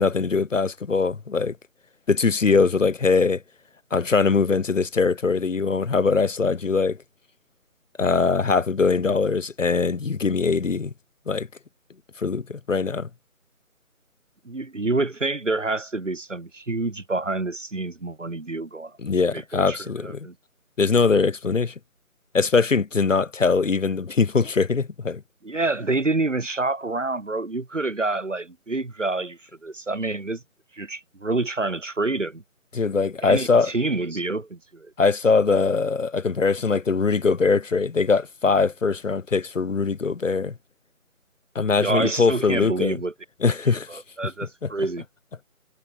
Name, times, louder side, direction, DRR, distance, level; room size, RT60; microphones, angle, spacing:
voice 1, 0.0-1.5 2.1-3.4 3.9-7.0 8.0-10.9 11.3-11.5 12.2-13.1 19.0-20.3 20.8-21.7 22.3-25.2 32.7-33.7 35.0-40.5 41.5-43.0 43.4-44.0 44.6-44.7, left 4 dB, 60° left, 0.8 m, -22 dB
voice 2, 14.5-18.9 19.3-20.3 25.4-30.4 30.7-32.4 33.2-34.9 41.8-43.1 43.7-45.0, right 2 dB, 55° right, 5.7 m, -27 dB
figure-of-eight pair, 175°, 43 cm